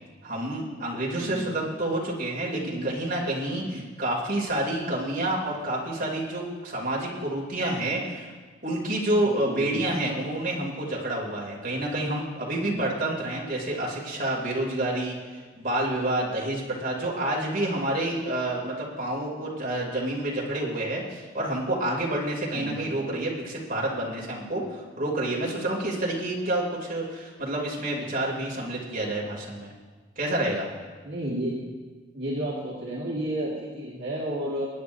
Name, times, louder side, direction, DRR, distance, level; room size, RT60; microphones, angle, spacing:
voice 1, 0.2-8.3 8.6-29.7 30.2-30.7, right 1 dB, 45° right, -3 dB, 2.7 m, -28 dB
voice 2, 1.2-1.5 2.6-2.9 3.6-3.8 9.2-9.9 12.6-12.9 22.5-22.8 31.0-31.7 32.1-34.7, right 1 dB, 65° right, -6 dB, 2.0 m, -32 dB
23.5 x 9.7 x 2.7 m, 1.4 s
head